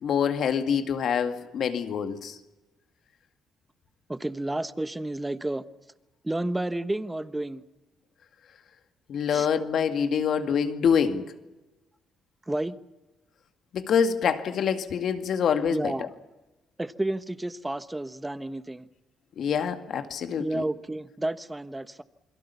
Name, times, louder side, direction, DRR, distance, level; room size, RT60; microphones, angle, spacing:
voice 1, 0.0-2.4 9.1-11.2 13.7-15.9 19.4-20.5, left 7 dB, 65° left, 2.2 m, -25 dB
voice 2, 4.1-5.6 6.2-7.6 9.3-9.5 12.5-12.8 15.7-16.1 16.8-18.9 20.4-22.0, right 1 dB, 10° right, 1.2 m, -31 dB
28.5 x 22.5 x 7.1 m
cardioid pair, 90°, 0 cm